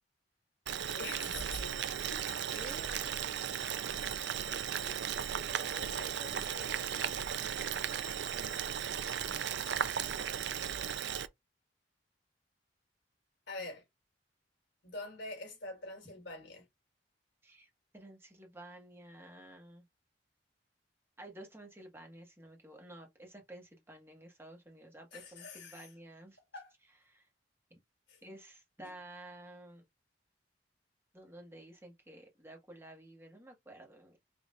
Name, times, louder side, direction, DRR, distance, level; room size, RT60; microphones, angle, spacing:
Boiling, 0.7-11.3, right 8 dB, 70° right, 0.5 m, -36 dB
voice 1, 0.9-2.5 2.9-3.1 3.5-3.8 4.5-5.0 5.5-7.9 9.7-10.3 13.5-13.8 14.8-16.6 25.1-25.9 26.5-26.7 28.1-28.2 28.8-28.9, left 2 dB, 80° left, 2.9 m, -47 dB
voice 2, 2.5-2.9 13.6-13.7 17.4-19.8 21.2-26.4 27.1-27.3 28.2-29.8 31.1-34.2, right 1 dB, 15° right, 1.4 m, -52 dB
5.4 x 3.0 x 2.5 m
head